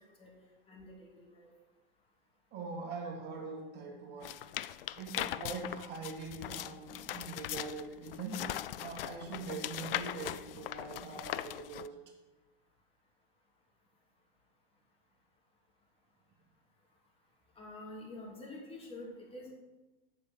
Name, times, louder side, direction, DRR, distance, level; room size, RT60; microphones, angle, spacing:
voice 1, 0.7-1.5 17.6-19.5, left 2 dB, 20° left, -2 dB, 2.7 m, -47 dB
voice 2, 2.5-4.4 5.0-12.0, right 4 dB, 35° right, 0 dB, 2.0 m, -43 dB
sound 1, 4.2-11.9, left 13 dB, 70° left, 0.5 m, -40 dB
7.4 x 5.1 x 6.9 m, 1.1 s
hypercardioid pair, 100°, 29 cm